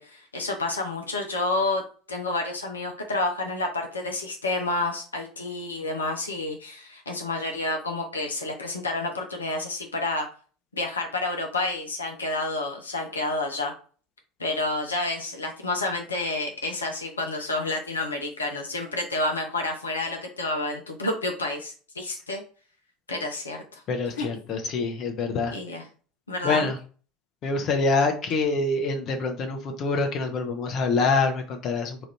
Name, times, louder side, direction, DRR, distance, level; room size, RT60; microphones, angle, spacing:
voice 1, 0.0-1.8 2.1-10.3 10.7-13.7 14.4-22.4 23.1-23.8 24.2-24.3 25.5-25.8 26.3-26.7, left 2 dB, 80° left, 2 dB, 0.6 m, -29 dB
voice 2, 23.9-25.6 26.4-26.8 27.4-32.0, left 3 dB, 45° left, 4 dB, 0.7 m, -25 dB
3.0 x 2.5 x 4.3 m, 0.40 s
figure-of-eight pair, 70°, 0 cm